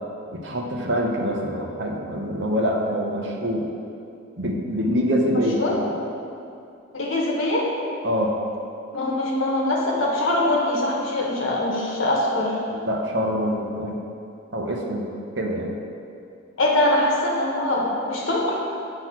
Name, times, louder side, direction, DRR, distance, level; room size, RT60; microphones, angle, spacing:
voice 1, 0.3-3.7 4.4-5.9 8.0-8.3 12.7-14.0 14.5-15.1 15.4-15.7, equal, 60° right, 0 dB, 0.8 m, -25 dB
voice 2, 5.3-5.8 6.9-7.7 8.9-12.6 16.6-18.6, left 1 dB, 85° left, -3 dB, 1.0 m, -23 dB
7.9 x 2.9 x 5.9 m, 2.6 s
head